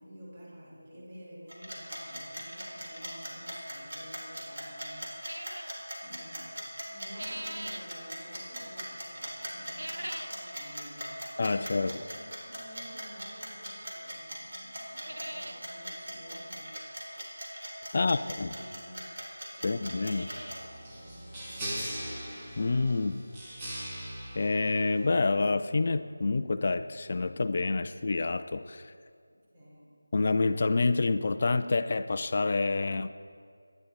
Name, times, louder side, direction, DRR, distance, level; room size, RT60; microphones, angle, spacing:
voice 1, 0.0-5.6 6.0-11.3 11.7-16.8 17.8-19.1 19.5-19.8 20.3-22.1 29.5-29.9, equal, 30° right, -5 dB, 4.9 m, -51 dB
sound 1, 1.5-20.6, equal, 55° right, 3.7 m, -40 dB
sound 2, 5.2-5.8 6.8-7.9 9.6-10.4 10.8-10.9 11.8-11.9 13.5-13.6 14.1-14.2 14.4-14.5 14.8-15.6 16.0-16.1 16.3-16.4 17.9-18.0 18.8-18.9 19.1-19.2 19.7-20.7 21.1-21.2 21.7-21.8 22.2-22.3 24.0-24.1 24.3-24.4 24.8-24.9, right 1 dB, 75° right, 0.9 m, -42 dB
voice 2, 11.4-12.0 17.9-18.5 19.6-20.3 22.6-23.2 24.4-28.9 30.1-33.1, left 3 dB, 35° left, 11 dB, 0.6 m, -28 dB
sound 3, 20.3-25.4, equal, 15° right, 1.8 m, -40 dB
25.0 x 11.0 x 4.2 m, 2.3 s
figure-of-eight pair, 165°, 0 cm